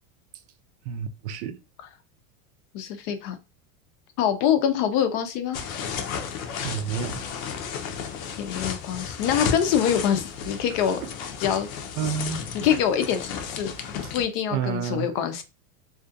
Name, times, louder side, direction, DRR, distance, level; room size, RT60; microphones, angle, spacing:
voice 1, 0.9-1.6 6.6-7.2 11.0-11.1 12.0-12.4 14.5-15.1, right 7 dB, 60° right, 0.5 m, -29 dB
voice 2, 2.7-3.3 4.2-5.6 8.4-11.0 11.4-11.7 12.5-13.7 14.1-15.4, left 9 dB, 45° left, 0.5 m, -25 dB
sound 1, 5.5-14.2, left 7 dB, 85° left, 0.7 m, -33 dB
2.5 x 2.4 x 2.5 m
supercardioid pair, 135°, 40 cm